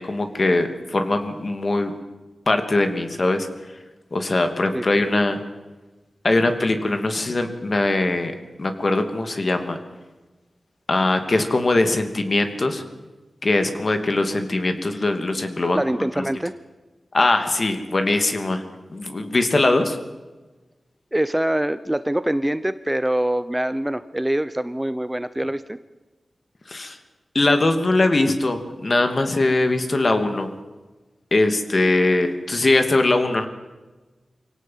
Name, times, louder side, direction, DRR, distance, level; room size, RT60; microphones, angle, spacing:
voice 1, 0.0-1.9 2.5-3.5 4.1-5.4 6.2-8.3 8.6-9.8 10.9-12.8 13.4-15.8 17.1-18.6 18.9-20.0 26.7-27.0 27.3-30.5 31.3-33.5, left 2 dB, 45° left, 7 dB, 2.7 m, -21 dB
voice 2, 15.7-16.5 21.1-25.8, right 1 dB, 10° right, 13 dB, 0.8 m, -24 dB
25.5 x 17.5 x 7.6 m, 1.2 s
wide cardioid pair, 90°, 0 cm